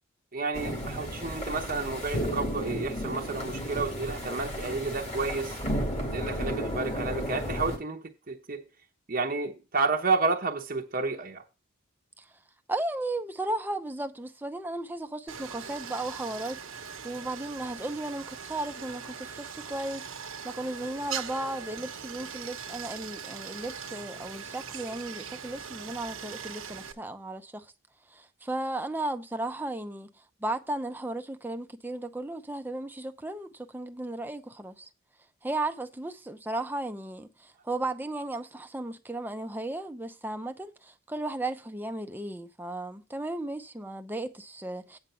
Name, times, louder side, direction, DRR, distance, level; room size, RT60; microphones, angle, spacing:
voice 1, 0.3-5.6 6.0-8.6 9.1-11.4, right 4 dB, 40° right, 0.9 m, -31 dB
sound 1, 0.5-7.8, equal, 30° left, 2.3 m, -33 dB
voice 2, 12.7-27.7 28.1-30.1 30.4-34.9 35.4-45.0, right 2 dB, 10° right, 0.7 m, -35 dB
Stream, 15.3-26.9, right 7 dB, 75° right, 1.1 m, -41 dB
9.3 x 5.0 x 5.6 m
head